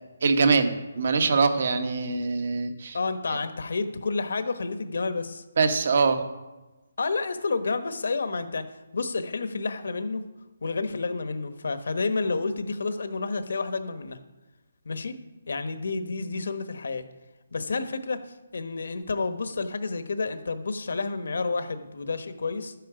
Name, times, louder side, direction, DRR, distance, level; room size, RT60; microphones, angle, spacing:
voice 1, 0.2-3.0 3.3-3.4 5.6-6.2, right 4 dB, 50° right, 8 dB, 1.2 m, -23 dB
voice 2, 2.9-5.4 7.0-8.7 8.9-10.2 10.6-14.2 14.8-15.1 15.5-17.0 17.5-18.2 18.5-22.7, left 4 dB, 65° left, 10 dB, 1.1 m, -30 dB
12.0 x 9.3 x 5.0 m, 1.1 s
hypercardioid pair, 170°, 0 cm